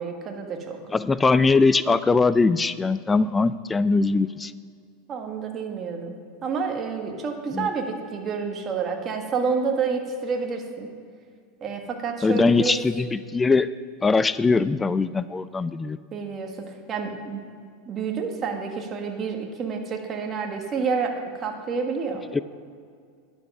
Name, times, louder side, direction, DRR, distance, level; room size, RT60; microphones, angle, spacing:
voice 1, 0.0-0.8 5.1-6.2 6.4-10.9 11.6-12.8 16.1-17.4 17.9-22.2, right 5 dB, 30° right, 3 dB, 1.5 m, -29 dB
voice 2, 0.9-4.5 7.5-7.7 12.2-13.7 14.0-16.0 22.3-22.4, left 4 dB, 15° left, 15 dB, 0.3 m, -21 dB
10.5 x 7.2 x 5.4 m, 2.2 s
hypercardioid pair, 115°, 0 cm